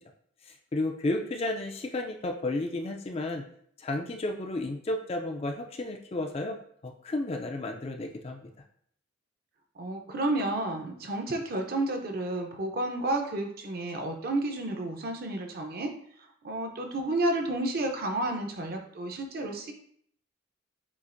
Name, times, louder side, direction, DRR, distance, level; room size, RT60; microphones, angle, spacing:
voice 1, 0.7-3.4 3.8-6.6 6.8-8.5, left 2 dB, 30° left, 3 dB, 0.4 m, -32 dB
voice 2, 9.8-15.9 16.4-19.7, right 2 dB, 50° right, 3 dB, 0.6 m, -31 dB
7.0 x 2.5 x 2.5 m, 0.63 s
head